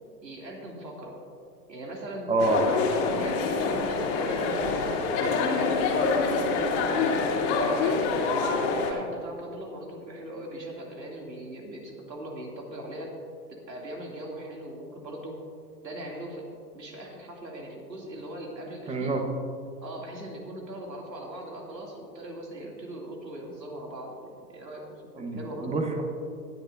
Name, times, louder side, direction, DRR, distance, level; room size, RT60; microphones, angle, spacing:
voice 1, 0.2-1.2 1.7-2.3 3.1-4.8 5.3-6.3 6.9-8.1 8.9-13.1 13.5-15.4 15.8-16.5 16.7-19.2 19.8-24.8 25.1-25.8, right 1 dB, 85° right, -1 dB, 2.9 m, -40 dB
voice 2, 2.3-2.7 18.9-19.2 25.2-26.0, right 2 dB, 15° right, 3 dB, 1.2 m, -26 dB
sound 1, 2.4-8.9, left 4 dB, 45° left, 2.4 m, -26 dB
19.0 x 10.0 x 2.7 m, 2.4 s
hypercardioid pair, 115°, 49 cm